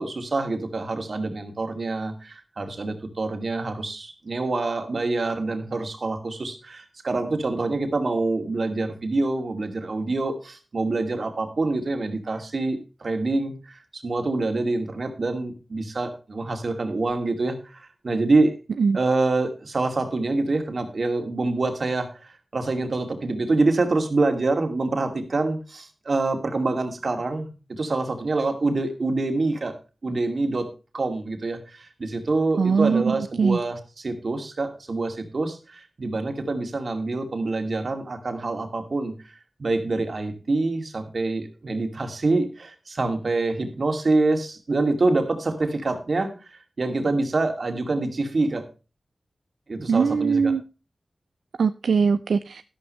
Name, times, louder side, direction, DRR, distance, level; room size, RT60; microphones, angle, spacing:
voice 1, 0.0-18.5 18.9-22.1 22.5-29.7 30.0-30.7 30.9-39.1 39.6-46.3 46.8-48.6 49.7-50.5, right 3 dB, 60° right, 6 dB, 2.5 m, -26 dB
voice 2, 32.6-33.6 49.9-50.6 51.6-52.6, right 5 dB, 90° right, 12 dB, 0.5 m, -21 dB
12.0 x 11.5 x 3.2 m, 0.33 s
cardioid pair, 55°, 0 cm